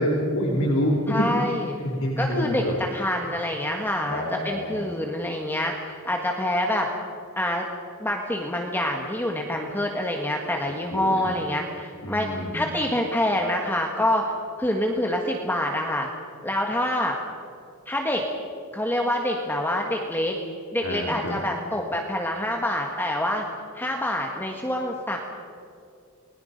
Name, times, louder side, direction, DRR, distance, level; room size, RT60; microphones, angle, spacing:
voice 1, 0.0-1.2 1.8-2.8 4.1-4.8 10.9-11.3 12.0-12.7 20.8-21.3, equal, 80° left, -2 dB, 3.7 m, -26 dB
voice 2, 1.1-1.8 2.2-6.9 7.4-7.7 8.0-14.2 14.6-16.1 16.4-17.2 17.9-18.2 18.7-20.3 20.7-23.4 23.7-25.2, left 1 dB, 10° left, 1 dB, 1.7 m, -26 dB
29.0 x 21.5 x 5.3 m, 2.4 s
head